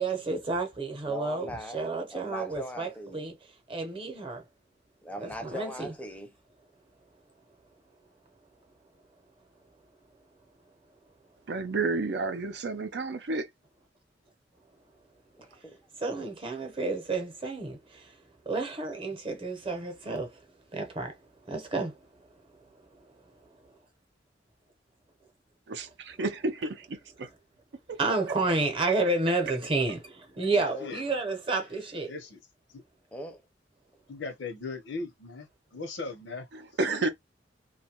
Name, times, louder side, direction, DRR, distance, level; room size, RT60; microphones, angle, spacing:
voice 1, 0.0-3.3 3.7-4.4 5.2-5.9 16.0-17.8 18.5-20.3 20.7-21.1 21.5-21.9 28.0-32.1, right 3 dB, 30° right, 0.8 m, -30 dB
voice 2, 1.1-3.3 5.0-6.3 15.4-15.8 16.1-16.2 30.7-30.9 33.1-33.4, left 1 dB, 10° left, 0.6 m, -40 dB
voice 3, 11.5-13.5 25.7-27.3 27.9-28.0 36.5-37.1, right 3 dB, 65° right, 0.5 m, -31 dB
voice 4, 30.4-31.0 32.1-32.4 32.7-32.8 34.1-36.5, left 3 dB, 75° left, 0.8 m, -39 dB
2.6 x 2.3 x 2.9 m
head